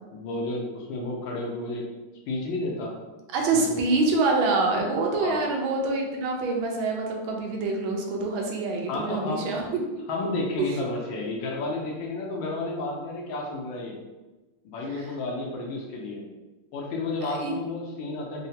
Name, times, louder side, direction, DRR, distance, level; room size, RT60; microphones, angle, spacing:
voice 1, 0.1-1.9 2.3-3.0 3.5-3.9 5.2-5.4 8.9-9.5 10.1-14.0 14.6-16.3 16.7-18.5, left 2 dB, 75° left, -1 dB, 1.3 m, -31 dB
voice 2, 3.3-9.6 10.6-10.8 15.0-15.1 17.2-17.5, right 3 dB, 80° right, 1 dB, 1.4 m, -26 dB
3.8 x 2.1 x 2.7 m, 1.2 s
omnidirectional pair, 2.3 m